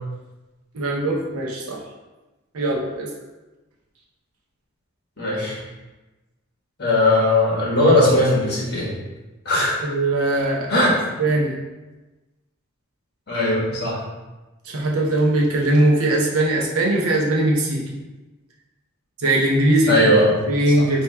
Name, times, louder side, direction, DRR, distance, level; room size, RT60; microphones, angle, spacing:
voice 1, 0.7-1.8 2.5-3.1 9.8-10.9 11.2-11.5 14.7-17.8 19.2-20.2 20.5-21.0, right 1 dB, 75° right, -2 dB, 0.8 m, -20 dB
voice 2, 5.2-5.6 6.8-8.9 9.4-9.8 10.7-10.9 13.3-14.0 19.9-20.4 20.8-20.9, left 1 dB, 45° left, -5 dB, 1.5 m, -18 dB
3.5 x 2.9 x 4.6 m, 1.1 s
head